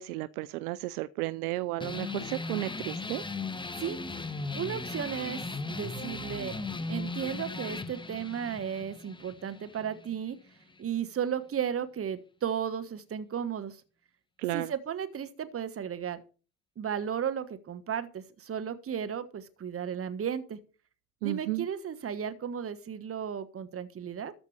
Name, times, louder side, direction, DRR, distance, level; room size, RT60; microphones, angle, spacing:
voice 1, 0.0-3.2 14.4-14.7 21.2-21.7, right 17 dB, 80° right, 0.6 m, -33 dB
sound 1, 1.8-10.8, left 3 dB, 10° left, 1.2 m, -37 dB
voice 2, 3.8-6.6 6.9-10.4 10.8-13.8 14.5-16.2 16.8-20.6 21.2-24.3, right 8 dB, 30° right, 1.3 m, -34 dB
13.5 x 5.2 x 6.4 m
hypercardioid pair, 70°, 44 cm